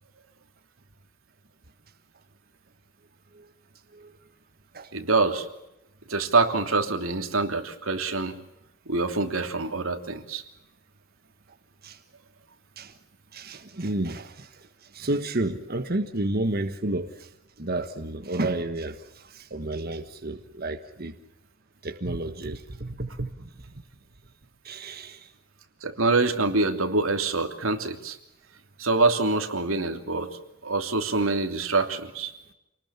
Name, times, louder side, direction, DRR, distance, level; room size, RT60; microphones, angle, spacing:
voice 1, 4.9-5.5 6.1-8.4 8.9-10.4 25.8-28.2 28.8-32.3, right 3 dB, 90° right, 5 dB, 3.0 m, -25 dB
voice 2, 13.3-17.3 17.6-21.1 21.8-23.5 24.6-25.3, right 2 dB, 50° right, 6 dB, 1.4 m, -31 dB
28.0 x 20.0 x 7.3 m, 0.90 s
head